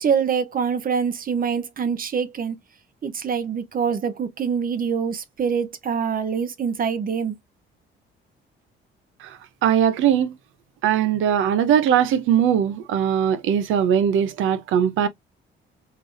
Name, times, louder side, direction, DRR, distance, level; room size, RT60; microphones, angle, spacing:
voice 1, 0.0-2.6 3.0-7.4, right 6 dB, 45° right, 0.8 m, -25 dB
voice 2, 9.2-10.4 10.8-15.1, right 9 dB, 85° right, 0.6 m, -20 dB
3.9 x 3.3 x 2.4 m
cardioid pair, 90°, 20 cm